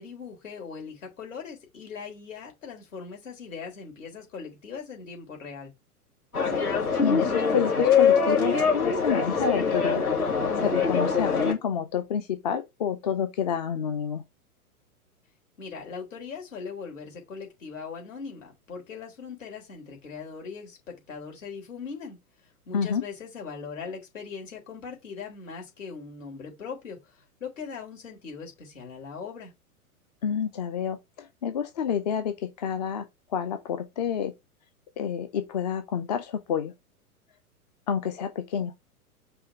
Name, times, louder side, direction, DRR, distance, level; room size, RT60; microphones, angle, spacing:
voice 1, 0.0-5.7 15.6-22.2 22.7-29.5, left 5 dB, 55° left, 3.8 m, -40 dB
sound 1, 6.3-11.5, left 5 dB, 75° left, 2.6 m, -23 dB
voice 2, 7.0-10.0 10.6-14.2 22.7-23.0 30.2-34.3 35.0-36.7 37.9-38.7, left 8 dB, 30° left, 0.5 m, -29 dB
5.5 x 3.2 x 5.4 m
figure-of-eight pair, 105°, 45 cm